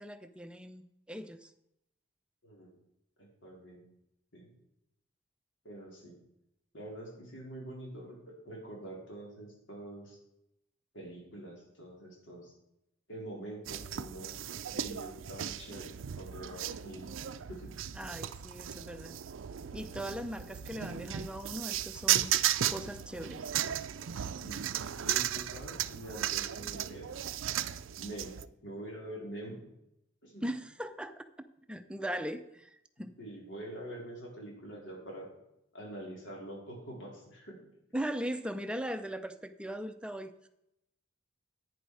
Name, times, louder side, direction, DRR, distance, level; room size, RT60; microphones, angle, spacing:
voice 1, 0.0-1.5 17.9-19.1 19.7-22.4 22.7-23.5 30.4-33.1 37.9-40.3, equal, 5° right, 8 dB, 0.6 m, -39 dB
voice 2, 2.4-2.7 3.2-3.8 4.3-4.5 5.6-6.2 6.7-10.2 10.9-12.5 13.1-14.4 14.7-17.1 17.5-17.7 24.4-24.6 25.0-27.1 28.0-28.4 28.6-29.6 30.2-30.4 33.2-35.3 35.7-37.6, right 1 dB, 70° left, -1 dB, 4.2 m, -45 dB
sound 1, 13.7-28.4, right 11 dB, 85° right, 0.5 m, -35 dB
11.0 x 9.2 x 4.8 m, 0.83 s
head